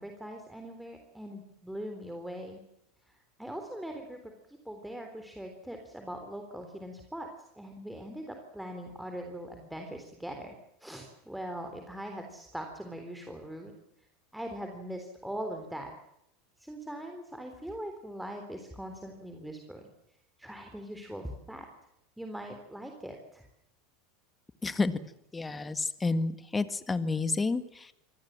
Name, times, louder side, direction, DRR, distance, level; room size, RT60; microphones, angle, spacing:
voice 1, 0.0-2.6 3.1-7.3 7.5-10.6 10.8-13.7 14.3-15.9 16.6-19.8 20.4-21.7 22.2-23.4, equal, 5° right, 4 dB, 3.7 m, -41 dB
voice 2, 24.6-24.9 25.3-27.9, left 3 dB, 15° left, 12 dB, 1.8 m, -30 dB
26.5 x 19.0 x 7.6 m, 0.82 s
hypercardioid pair, 85°, 0 cm